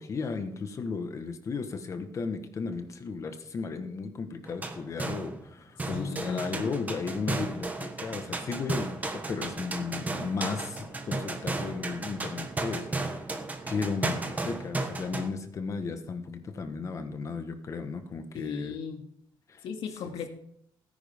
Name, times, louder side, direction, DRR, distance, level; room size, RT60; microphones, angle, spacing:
voice 1, 0.0-13.2 13.7-18.8 19.5-19.7 19.9-20.1, left 4 dB, 35° left, 8 dB, 1.3 m, -35 dB
sound 1, 4.5-5.5 5.8-15.3, right 2 dB, 20° right, 1.3 m, -34 dB
voice 2, 5.9-6.7 18.3-19.1 19.6-20.3, left 6 dB, 80° left, 4 dB, 2.1 m, -36 dB
17.5 x 10.5 x 3.6 m, 0.69 s
cardioid pair, 160°, 9 cm